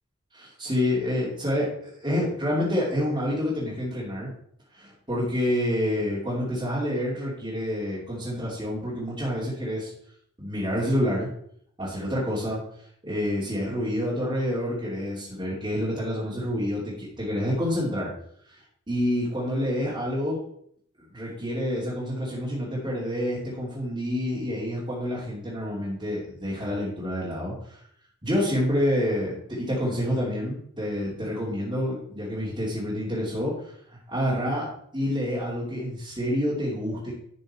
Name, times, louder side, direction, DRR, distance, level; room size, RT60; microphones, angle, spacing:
voice 1, 0.3-4.3 4.7-9.9 10.4-11.3 11.8-12.6 13.0-18.1 18.5-18.6 18.9-20.4 21.1-27.8 28.2-37.2, equal, 20° right, -8 dB, 2.8 m, -28 dB
11.5 x 6.2 x 4.3 m, 0.67 s
head